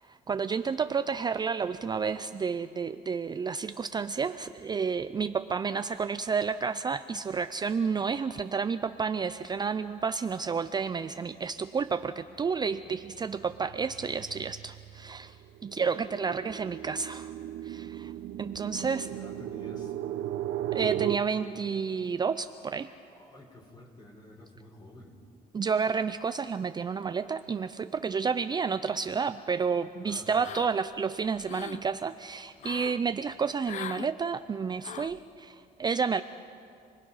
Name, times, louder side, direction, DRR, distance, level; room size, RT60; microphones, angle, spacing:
voice 1, 0.1-15.3 15.6-17.3 17.6-18.1 18.4-19.1 20.7-22.9 25.5-36.2, right 5 dB, 25° right, 11 dB, 0.5 m, -30 dB
sound 1, 11.5-11.8 12.2-21.2, right 12 dB, 70° right, 1.0 m, -37 dB
voice 2, 19.1-20.0 23.1-25.2 30.0-30.3, left 2 dB, 25° left, 2 dB, 4.1 m, -50 dB
sound 2, 30.4-30.9 31.3-31.8 32.6-33.0 33.6-34.1 34.8-35.2, left 11 dB, 45° left, 0.4 m, -40 dB
28.5 x 20.0 x 5.6 m, 2.5 s
cardioid pair, 110°, 17 cm